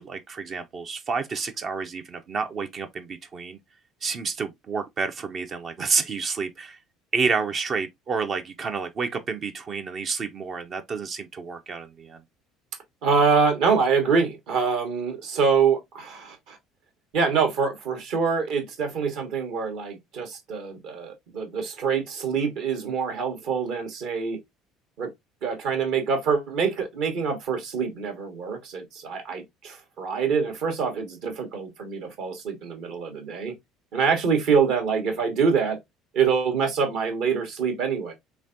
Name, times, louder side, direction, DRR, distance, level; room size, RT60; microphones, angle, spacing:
voice 1, 0.0-3.6 4.0-6.8 7.1-12.2, right 5 dB, 40° right, 0.5 m, -29 dB
voice 2, 13.0-16.6 17.1-24.4 25.0-25.1 25.4-33.5 33.9-35.8 36.1-38.1, right 5 dB, 60° right, 1.1 m, -25 dB
3.5 x 3.1 x 2.5 m
figure-of-eight pair, 60°, 0 cm